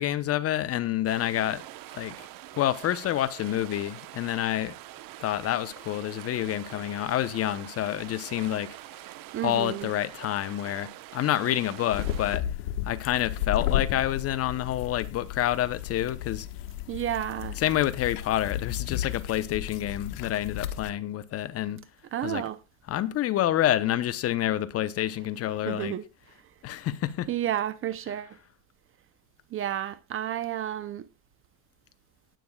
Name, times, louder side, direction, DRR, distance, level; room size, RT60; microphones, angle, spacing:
voice 1, 0.0-1.6 1.9-2.3 2.5-4.7 5.2-8.7 9.4-12.4 12.8-16.5 17.6-21.8 22.2-22.4 22.9-25.9 26.6-27.3, left 12 dB, 30° left, 0.7 m, -28 dB
sound 1, 1.1-12.4, right 15 dB, 45° right, 1.0 m, -45 dB
voice 2, 9.3-9.9 16.9-17.6 22.1-22.6 25.7-26.0 27.3-28.4 29.5-31.1, right 11 dB, 30° right, 0.7 m, -31 dB
sound 2, 11.9-20.9, left 11 dB, 80° left, 1.4 m, -33 dB
19.5 x 8.7 x 2.3 m
supercardioid pair, 130°, 46 cm